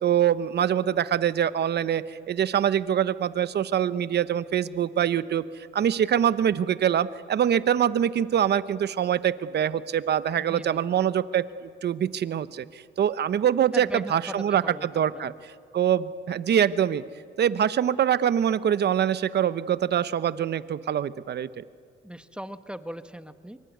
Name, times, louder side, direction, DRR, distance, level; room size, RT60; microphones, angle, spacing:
voice 1, 0.0-15.3 15.7-17.0 17.4-21.6, right 9 dB, 55° right, 15 dB, 1.0 m, -24 dB
voice 2, 10.4-10.8 13.7-14.9 15.1-15.3 22.0-23.6, equal, 5° right, 10 dB, 1.2 m, -39 dB
26.0 x 23.5 x 9.5 m, 2.3 s
cardioid pair, 90°, 20 cm